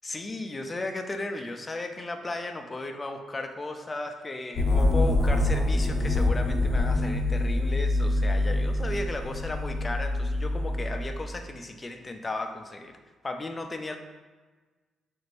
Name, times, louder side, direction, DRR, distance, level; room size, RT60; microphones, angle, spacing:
voice 1, 0.0-13.0 13.2-14.0, left 2 dB, 25° left, 5 dB, 0.4 m, -35 dB
sound 1, 4.6-11.3, left 2 dB, 50° left, 0.7 m, -25 dB
4.2 x 2.5 x 3.2 m, 1.3 s
cardioid pair, 90°, 0 cm